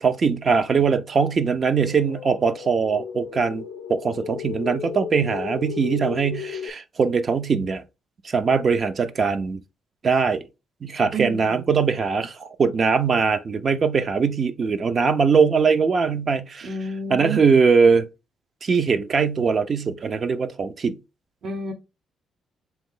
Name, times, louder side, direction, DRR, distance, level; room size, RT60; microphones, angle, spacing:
voice 1, 0.0-7.8 8.2-9.6 10.0-10.4 10.8-16.7 17.1-18.1 18.6-21.0, right 5 dB, 45° right, 0.5 m, -21 dB
sound 1, 1.7-6.7, left 9 dB, 85° left, 0.3 m, -35 dB
voice 2, 11.1-11.7 16.6-17.4 21.4-21.7, right 2 dB, 60° right, 1.0 m, -30 dB
3.7 x 3.0 x 3.7 m
cardioid pair, 90°, 0 cm